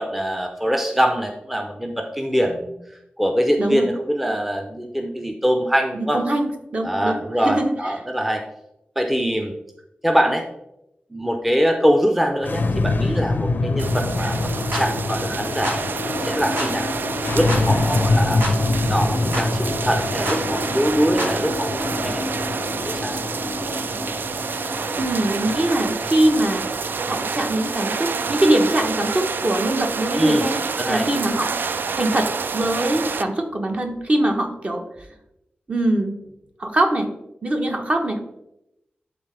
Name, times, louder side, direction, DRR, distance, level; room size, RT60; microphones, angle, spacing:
voice 1, 0.0-2.8 3.2-6.2 6.8-8.4 9.0-9.5 10.0-10.4 11.1-15.9 16.2-16.9 17.3-18.4 18.9-22.2 22.8-23.1 30.2-30.4 30.8-31.1, equal, 5° right, 3 dB, 0.6 m, -23 dB
voice 2, 3.6-3.9 6.1-7.9 25.0-30.6 30.9-31.5 31.9-34.8 35.7-36.2 36.6-37.1 37.4-38.2, right 1 dB, 35° right, 4 dB, 1.0 m, -22 dB
sound 1, 12.3-27.6, left 2 dB, 65° left, 0.5 m, -25 dB
sound 2, 13.8-33.2, right 5 dB, 70° right, 0.3 m, -28 dB
sound 3, 14.7-14.9 15.6-15.8 16.6-16.7 17.5-17.7 18.4-18.6 19.3-19.5 20.3-20.4 21.2-21.4, right 1 dB, 85° right, 1.8 m, -27 dB
11.0 x 3.7 x 3.3 m, 0.85 s
wide cardioid pair, 115°, 4 cm